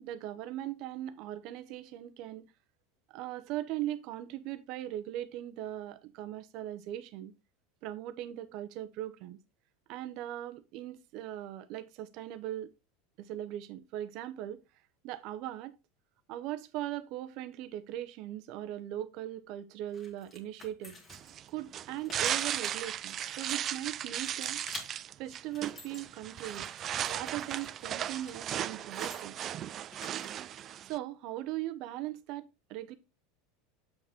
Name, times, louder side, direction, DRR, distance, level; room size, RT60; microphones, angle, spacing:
voice 1, 0.0-2.5 3.1-7.3 7.8-9.4 9.9-12.7 13.2-14.6 15.0-15.8 16.3-21.0 21.5-24.6 25.2-26.7 27.1-29.3 30.9-33.0, right 13 dB, 50° right, 0.8 m, -39 dB
sound 1, 19.9-21.5 21.9-23.9 24.2-24.9 25.3-26.0 26.4-29.3 29.9-30.6, left 2 dB, 20° left, 1.8 m, -50 dB
sound 2, 21.1-31.0, right 10 dB, 30° right, 0.3 m, -36 dB
7.7 x 4.8 x 3.6 m
supercardioid pair, 155°, 0 cm